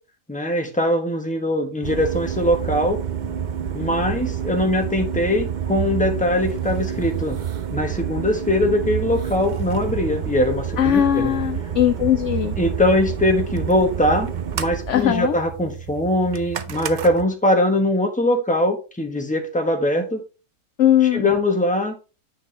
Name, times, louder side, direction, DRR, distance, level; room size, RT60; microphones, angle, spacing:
voice 1, 0.3-3.0 3.7-7.4 7.7-11.3 12.6-14.3 14.5-20.2 21.0-21.9, left 1 dB, 5° left, 4 dB, 1.2 m, -21 dB
sound 1, 1.8-17.2, right 8 dB, 80° right, 0.4 m, -28 dB
voice 2, 10.8-12.6 14.9-15.3 20.8-21.3, left 11 dB, 70° left, 11 dB, 0.7 m, -19 dB
9.4 x 6.1 x 3.3 m, 0.32 s
omnidirectional pair, 1.7 m